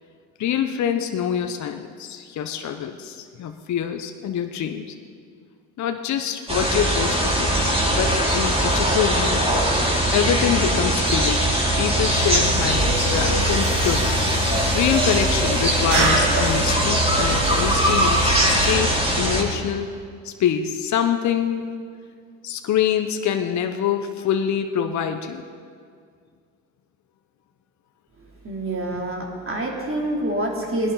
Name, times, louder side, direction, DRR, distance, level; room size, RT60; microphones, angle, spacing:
voice 1, 0.4-4.9 5.8-9.7 10.1-14.2 14.7-19.9 20.2-21.7 22.4-25.4, left 9 dB, 45° left, 6 dB, 1.0 m, -25 dB
sound 1, 6.5-19.4, right 1 dB, 15° right, 3.5 m, -21 dB
sound 2, 12.0-18.8, equal, 70° right, 2.1 m, -28 dB
voice 2, 28.2-30.9, right 1 dB, 30° right, -1 dB, 3.4 m, -27 dB
18.5 x 11.0 x 4.1 m, 2.1 s
hypercardioid pair, 70°, 40 cm